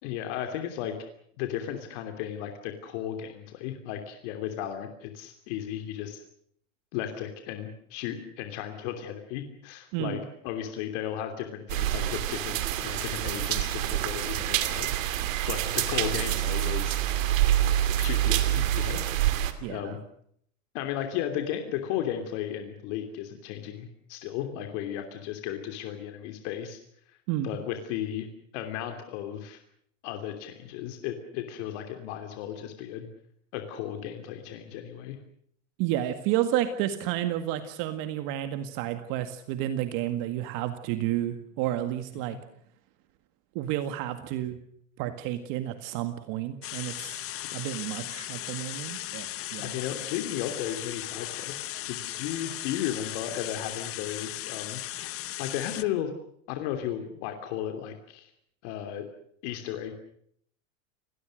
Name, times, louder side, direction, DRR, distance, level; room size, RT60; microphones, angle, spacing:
voice 1, 0.0-1.0 1.4-6.2 6.9-17.0 18.0-19.0 19.7-20.0 20.7-26.8 27.4-28.3 28.5-29.6 30.0-33.1 33.5-35.2 42.3-42.4 49.6-56.1 56.5-58.3 58.6-59.1 59.4-59.9, left 10 dB, 65° left, 6 dB, 3.1 m, -35 dB
voice 2, 9.9-10.2 19.6-20.0 27.3-27.6 35.8-42.4 43.6-44.6 45.0-47.3 47.5-49.7, right 12 dB, 55° right, 9 dB, 1.9 m, -31 dB
sound 1, 11.7-19.5, right 13 dB, 80° right, 2.7 m, -27 dB
sound 2, 46.6-55.8, left 14 dB, 35° left, 1.0 m, -37 dB
29.5 x 18.5 x 6.5 m, 0.68 s
supercardioid pair, 120°, 38 cm